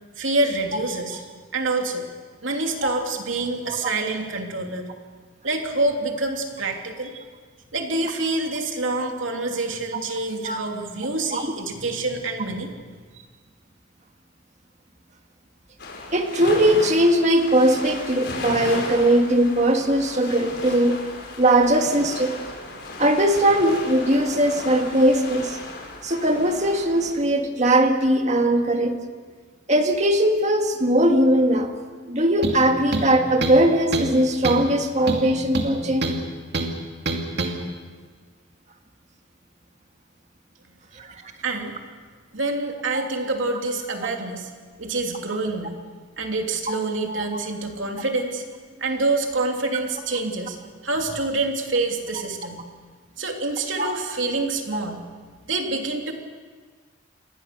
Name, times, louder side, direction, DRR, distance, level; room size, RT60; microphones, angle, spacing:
voice 1, 0.2-1.2 1.5-2.1 2.4-4.9 5.4-7.3 7.7-12.8 41.4-41.8 42.3-44.5 44.8-45.8 46.2-50.6 50.8-52.6 53.2-55.0 55.4-56.1, right 2 dB, 75° right, 2 dB, 3.1 m, -26 dB
sound 1, 15.8-27.1, left 2 dB, 55° left, 6.2 m, -35 dB
voice 2, 16.1-21.0 21.4-22.4 23.0-25.6 26.0-29.0 29.7-31.7 32.1-36.1 41.0-41.1 42.9-43.0 47.1-47.2 53.8-53.9, right 1 dB, 35° right, 4 dB, 2.0 m, -20 dB
sound 2, 32.4-32.6 32.9-33.6 33.9-34.2 34.4-34.7 35.1-36.2 36.5-36.7 37.1-37.5, right 2 dB, 55° right, 2.6 m, -26 dB
28.5 x 21.5 x 6.8 m, 1.5 s
head